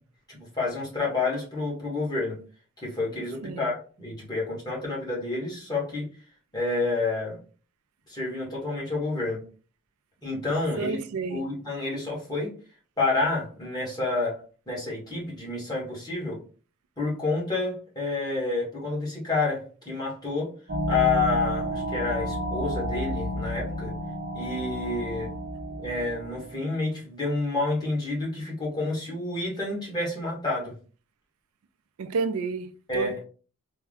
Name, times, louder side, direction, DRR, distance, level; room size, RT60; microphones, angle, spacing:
voice 1, 0.3-2.4 2.8-6.1 6.5-7.4 8.1-9.4 10.2-11.0 11.3-12.5 13.0-14.4 14.7-16.4 17.0-20.5 20.9-23.9 24.3-25.3 25.8-30.7 32.9-33.2, left 3 dB, 20° left, 1.4 m, -29 dB
voice 2, 3.4-3.7 10.8-11.4 32.0-33.2, right 4 dB, 75° right, 0.4 m, -31 dB
sound 1, 20.7-26.5, equal, 45° right, 0.7 m, -31 dB
3.5 x 2.2 x 3.5 m
head